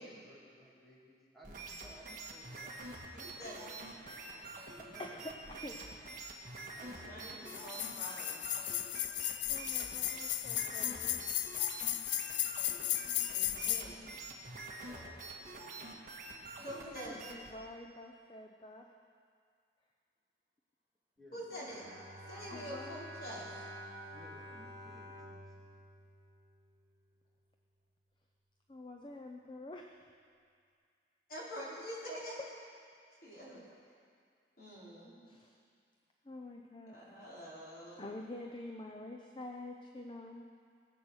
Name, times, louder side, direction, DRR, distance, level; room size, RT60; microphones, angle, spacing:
voice 1, 0.0-2.7 4.8-5.3 5.8-5.9 6.8-7.6 9.8-10.1 10.9-11.4 13.3-13.7 14.8-15.9 21.2-21.5 24.1-25.7, equal, ahead, -7 dB, 2.3 m, -59 dB
sound 1, 1.4-17.5, right 2 dB, 45° right, 1.8 m, -47 dB
voice 2, 3.1-3.7 6.7-8.4 10.9-11.2 13.3-14.1 16.6-17.2 21.3-21.9 22.3-23.5 31.3-32.4 33.2-33.6 34.6-35.2 36.9-38.1, equal, 55° left, -7 dB, 4.6 m, -46 dB
voice 3, 4.0-5.8 9.5-11.2 13.1-13.4 16.9-18.9 21.6-21.7 22.4-23.0 28.7-30.0 35.3-35.6 36.2-37.0 38.0-40.5, left 2 dB, 25° left, 2 dB, 0.7 m, -48 dB
sound 2, 7.5-13.8, left 13 dB, 80° left, 0.5 m, -35 dB
Bowed string instrument, 21.6-27.0, equal, 65° right, 1.7 m, -49 dB
21.5 x 7.9 x 6.4 m, 2.2 s
head